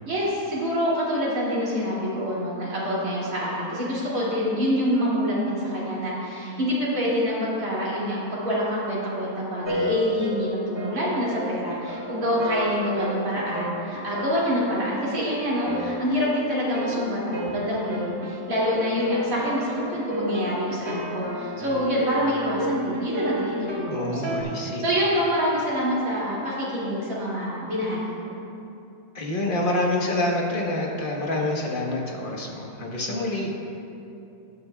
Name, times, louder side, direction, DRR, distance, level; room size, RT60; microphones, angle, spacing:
voice 1, 0.0-28.3, equal, 60° right, -8 dB, 3.0 m, -26 dB
sound 1, 9.6-24.4, equal, 20° right, 0.8 m, -32 dB
voice 2, 23.9-24.8 29.1-33.5, left 1 dB, 35° left, -1 dB, 1.3 m, -27 dB
16.5 x 9.5 x 2.3 m, 2.8 s
omnidirectional pair, 1.6 m